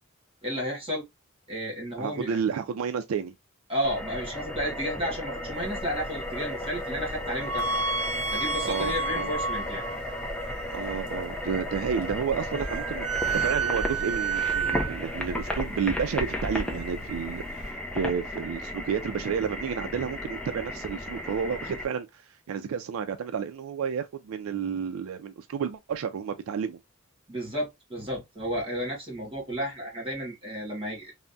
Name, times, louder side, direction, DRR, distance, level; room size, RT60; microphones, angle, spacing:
voice 1, 0.4-1.0 1.5-2.4 3.7-7.7 8.3-9.8 27.3-31.1, equal, 25° right, 1.5 m, -32 dB
voice 2, 2.0-3.3 8.6-9.3 10.7-26.8, right 7 dB, 75° right, 0.3 m, -31 dB
sound 1, 3.8-21.8, left 1 dB, 5° left, 0.4 m, -35 dB
sound 2, 5.5-17.7, right 4 dB, 55° right, 0.8 m, -32 dB
3.3 x 2.1 x 2.4 m
head